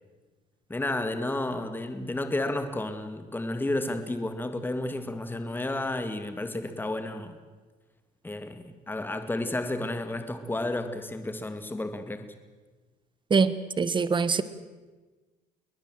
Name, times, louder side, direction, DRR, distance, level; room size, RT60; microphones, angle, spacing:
voice 1, 0.7-7.3 8.2-12.3, left 2 dB, 10° left, 2.0 m, -32 dB
voice 2, 13.8-14.4, right 5 dB, 30° right, 1.4 m, -23 dB
22.5 x 20.0 x 7.7 m
cardioid pair, 110°, 17 cm